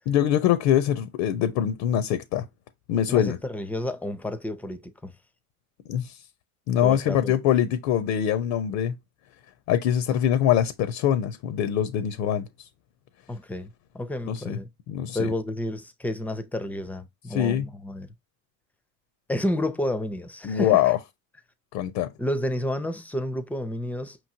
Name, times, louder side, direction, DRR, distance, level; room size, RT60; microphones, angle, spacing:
voice 1, 0.1-2.5 2.9-3.4 5.9-6.2 6.7-8.9 9.7-12.5 14.3-14.6 14.9-15.3 17.3-17.7 20.4-21.0 21.7-22.1, left 10 dB, 60° left, 0.6 m, -23 dB
voice 2, 3.1-5.1 6.8-7.3 13.3-14.7 15.1-18.1 19.3-20.8 22.2-24.2, left 1 dB, 5° left, 0.5 m, -30 dB
5.3 x 3.1 x 2.6 m
hypercardioid pair, 90°, 42 cm